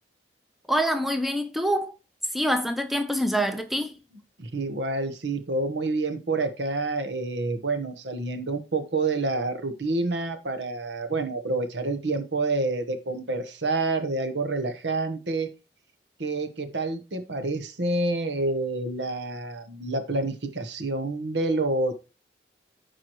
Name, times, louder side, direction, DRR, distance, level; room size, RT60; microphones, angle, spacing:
voice 1, 0.7-2.0 2.3-4.0, equal, ahead, 0.7 m, -25 dB
voice 2, 4.4-15.5 16.2-21.9, right 2 dB, 80° right, 1.1 m, -28 dB
14.0 x 4.8 x 3.0 m
head